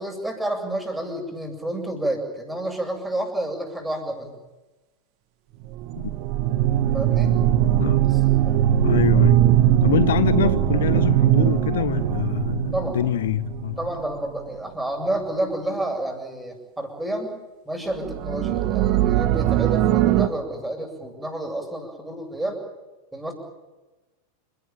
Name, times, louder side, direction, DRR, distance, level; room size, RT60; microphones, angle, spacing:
voice 1, 0.0-4.3 6.9-7.3 8.4-8.6 12.7-13.0 13.8-17.3 17.7-22.6 23.1-23.3, right 1 dB, 5° right, 7.7 m, -29 dB
sound 1, 5.7-14.0 18.0-20.3, right 12 dB, 40° right, 1.4 m, -20 dB
voice 2, 8.8-9.4 9.8-13.8, left 11 dB, 60° left, 0.8 m, -25 dB
29.5 x 18.0 x 9.1 m
figure-of-eight pair, 90°, 0 cm